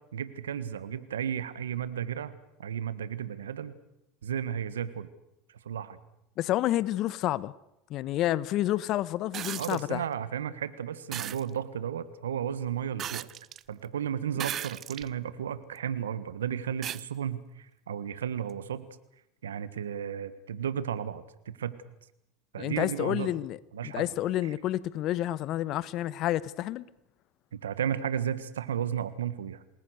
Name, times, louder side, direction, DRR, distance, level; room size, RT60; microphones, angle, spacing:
voice 1, 0.1-2.3 2.6-3.8 4.2-5.1 5.6-6.0 9.6-13.3 13.7-18.8 19.4-21.7 22.5-23.3 23.7-24.1 27.5-29.6, right 9 dB, 90° right, 1.5 m, -33 dB
voice 2, 6.4-7.5 7.9-10.0 22.6-23.6 23.8-26.8, left 14 dB, 55° left, 1.1 m, -29 dB
sound 1, 9.3-9.8 11.1-11.4 13.0-13.6 14.4-15.1 15.8-15.9 16.8-17.0 18.5-18.6, right 10 dB, 45° right, 0.8 m, -36 dB
27.5 x 20.5 x 6.5 m
hypercardioid pair, 85°, 0 cm